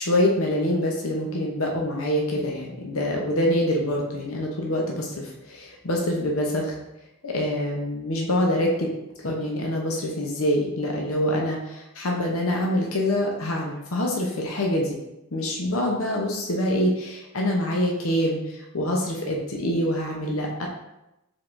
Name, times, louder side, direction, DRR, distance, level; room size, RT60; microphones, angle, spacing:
voice 1, 0.0-6.8 7.2-8.7 9.2-15.0 15.3-20.7, left 1 dB, 65° left, -1 dB, 0.7 m, -25 dB
4.7 x 3.7 x 2.5 m, 0.90 s
head